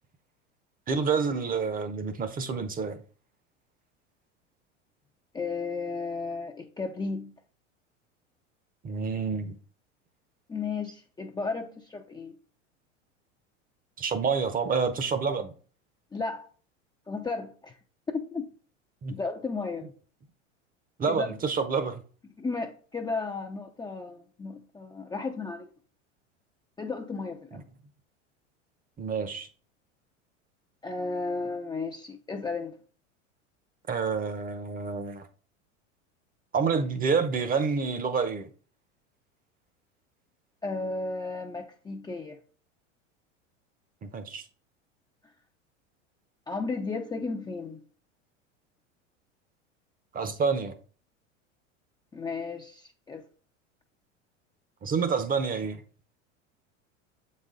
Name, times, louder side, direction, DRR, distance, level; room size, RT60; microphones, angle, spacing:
voice 1, 0.9-3.0 8.8-9.6 14.0-15.5 19.0-19.1 21.0-22.0 29.0-29.5 33.9-35.3 36.5-38.5 44.0-44.5 50.1-50.8 54.8-55.8, right 5 dB, 20° right, 0.8 m, -28 dB
voice 2, 5.3-7.3 10.5-12.4 16.1-16.5 17.1-17.8 18.1-18.5 19.1-19.9 21.1-21.4 22.4-25.7 26.8-27.6 30.8-32.7 40.6-42.4 46.5-47.8 52.1-53.2, left 4 dB, 10° left, 0.5 m, -34 dB
7.5 x 4.2 x 3.7 m
hypercardioid pair, 85°, 38 cm